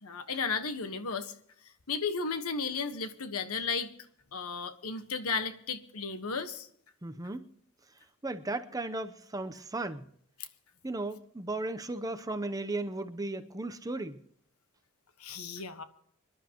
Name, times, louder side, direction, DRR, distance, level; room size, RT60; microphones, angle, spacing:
voice 1, 0.0-1.3 1.6-3.9 4.3-6.7 10.4-10.5 15.2-15.8, left 5 dB, 85° left, 1.4 m, -34 dB
voice 2, 7.0-7.5 8.2-10.1 10.8-14.2, right 2 dB, 15° right, 0.7 m, -35 dB
26.0 x 11.5 x 3.0 m
head